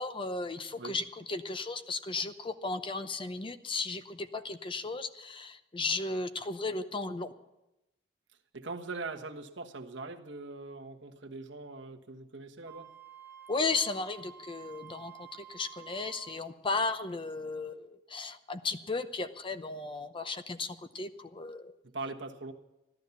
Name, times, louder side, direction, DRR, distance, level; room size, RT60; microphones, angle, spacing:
voice 1, 0.0-7.3 13.5-21.7, left 3 dB, 30° left, 10 dB, 0.7 m, -35 dB
voice 2, 8.5-12.9 21.9-22.5, right 3 dB, 80° right, 4 dB, 1.4 m, -41 dB
Wind instrument woodwind instrument, 12.6-16.4, right 9 dB, 10° right, 3.5 m, -51 dB
14.5 x 12.0 x 7.1 m, 0.94 s
head